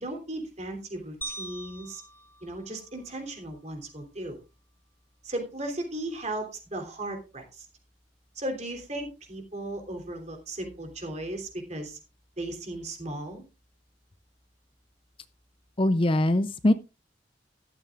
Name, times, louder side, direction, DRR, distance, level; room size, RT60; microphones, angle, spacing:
voice 1, 0.0-2.0 2.4-4.4 5.2-7.7 8.3-12.0 12.4-13.4, right 1 dB, 40° right, 3 dB, 3.2 m, -36 dB
sound 1, 1.2-3.6, right 2 dB, 10° left, 1.0 m, -43 dB
voice 2, 15.8-16.7, left 1 dB, 30° left, 12 dB, 0.5 m, -22 dB
14.0 x 12.5 x 2.5 m, 0.28 s
head